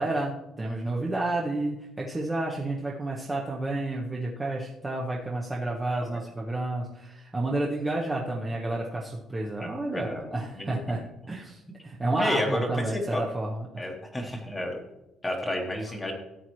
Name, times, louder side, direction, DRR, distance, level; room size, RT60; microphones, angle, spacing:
voice 1, 0.0-13.9, right 2 dB, 15° right, -2 dB, 0.9 m, -30 dB
voice 2, 5.8-6.2 9.6-10.3 10.6-10.8 12.0-13.2 13.8-14.8 15.2-16.1, left 1 dB, 10° left, 1 dB, 1.2 m, -31 dB
14.0 x 9.0 x 3.1 m, 0.95 s
cardioid pair, 175°, 0 cm